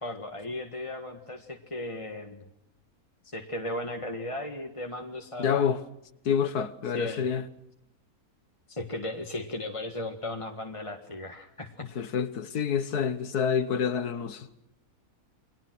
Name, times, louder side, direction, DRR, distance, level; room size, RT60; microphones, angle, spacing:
voice 1, 0.0-2.4 3.3-5.7 6.9-7.3 8.7-11.9, left 1 dB, 20° left, 1.8 m, -36 dB
voice 2, 5.4-5.8 6.3-7.4 12.0-14.5, left 7 dB, 80° left, 1.8 m, -27 dB
29.5 x 23.5 x 6.2 m
omnidirectional pair, 1.6 m